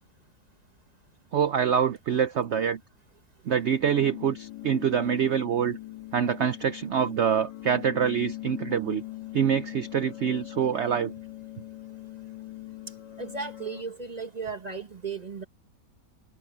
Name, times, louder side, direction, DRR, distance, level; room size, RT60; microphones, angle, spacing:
voice 1, 1.3-2.8 3.5-5.8 6.1-9.0 9.3-11.1, right 8 dB, 75° right, 0.6 m, -25 dB
sound 1, 3.8-13.8, left 17 dB, 75° left, 1.9 m, -41 dB
voice 2, 13.2-15.4, right 4 dB, 25° right, 1.2 m, -35 dB
omnidirectional pair, 1.9 m